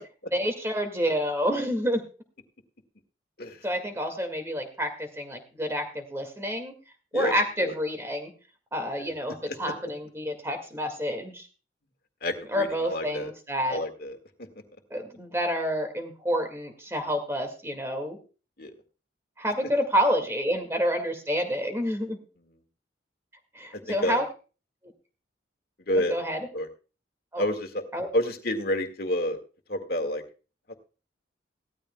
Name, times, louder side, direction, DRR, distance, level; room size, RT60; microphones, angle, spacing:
voice 1, 0.3-2.0 3.6-6.7 7.1-8.3 8.7-11.5 12.5-13.8 14.9-18.2 19.4-22.2 23.5-24.2 26.1-26.5 27.3-27.4 27.9-28.1, equal, 15° right, 5 dB, 2.0 m, -28 dB
voice 2, 12.2-13.3 13.7-14.2 18.6-18.7 23.9-24.2 25.9-26.1 26.5-26.7 27.4-27.8 28.1-29.4 29.7-30.2 30.7-30.8, left 1 dB, 55° left, 5 dB, 1.8 m, -29 dB
17.0 x 13.0 x 2.2 m, 0.34 s
head